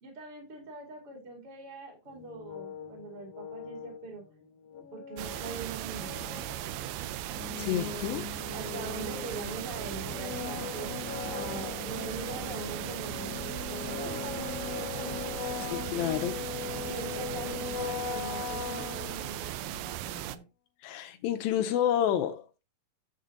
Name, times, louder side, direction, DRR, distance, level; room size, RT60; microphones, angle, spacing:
voice 1, 0.0-4.2 4.9-6.3 8.5-15.2 15.5-16.2 16.9-20.4, right 3 dB, 40° right, 3.0 m, -43 dB
sound 1, 2.1-19.7, left 8 dB, 70° left, 1.5 m, -40 dB
sound 2, 5.2-20.4, right 13 dB, 85° right, 2.3 m, -37 dB
voice 2, 7.6-8.3 15.7-16.4 20.8-22.6, left 10 dB, 90° left, 2.5 m, -29 dB
10.5 x 7.4 x 2.8 m
omnidirectional pair, 4.2 m